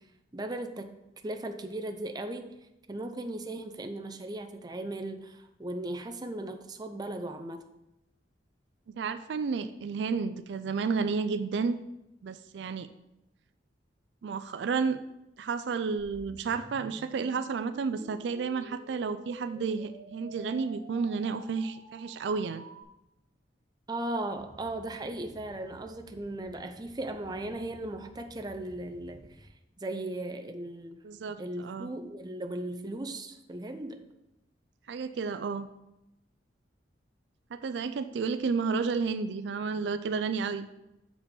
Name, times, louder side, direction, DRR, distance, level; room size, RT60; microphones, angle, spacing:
voice 1, 0.3-0.9 1.2-2.5 2.9-7.6 23.9-29.5 29.8-31.0 31.4-34.0, right 1 dB, 20° right, 5 dB, 0.6 m, -37 dB
voice 2, 8.9-11.8 12.2-12.9 14.2-15.0 15.4-22.6 31.0-31.9 34.9-35.7 37.5-40.7, right 5 dB, 70° right, 11 dB, 0.4 m, -31 dB
sound 1, 16.0-22.8, right 2 dB, 90° right, 1.2 m, -50 dB
sound 2, 24.3-29.5, equal, 20° left, 1.1 m, -55 dB
6.8 x 5.0 x 5.2 m, 0.89 s
head